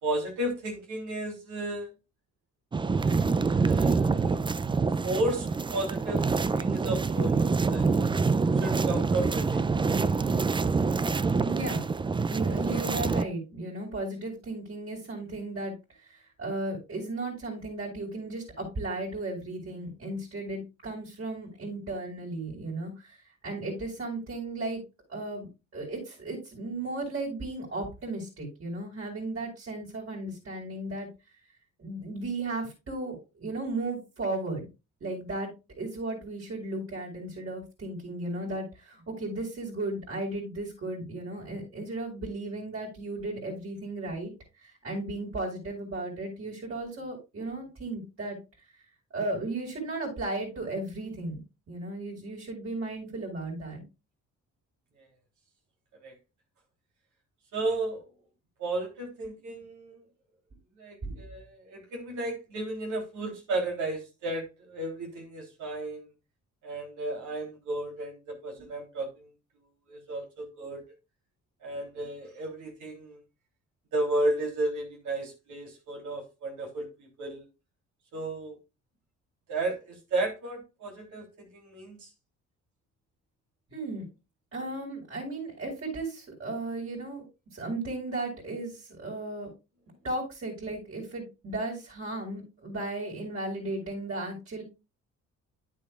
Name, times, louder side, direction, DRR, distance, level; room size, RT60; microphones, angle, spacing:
voice 1, 0.0-1.9 3.0-4.5 5.0-8.1 8.6-9.7 55.0-55.1 56.0-56.1 57.5-58.0 58.6-60.0 60.8-66.1 66.6-69.3 69.9-70.8 71.6-73.2 73.9-77.5 78.1-78.6 79.5-82.1, right 2 dB, 75° right, 3.4 m, -33 dB
sound 1, 2.7-13.2, right 4 dB, 15° right, 0.4 m, -26 dB
voice 2, 11.4-11.8 12.3-23.2 23.4-24.8 25.1-25.5 25.7-31.1 31.8-34.7 35.0-44.3 44.6-48.4 49.1-51.4 51.7-53.8 61.0-61.2 68.6-68.7 83.7-84.1 84.5-87.2 87.5-89.5 90.0-94.6, right 2 dB, 45° right, 5.0 m, -35 dB
9.9 x 8.4 x 2.4 m
cardioid pair, 90°, 30 cm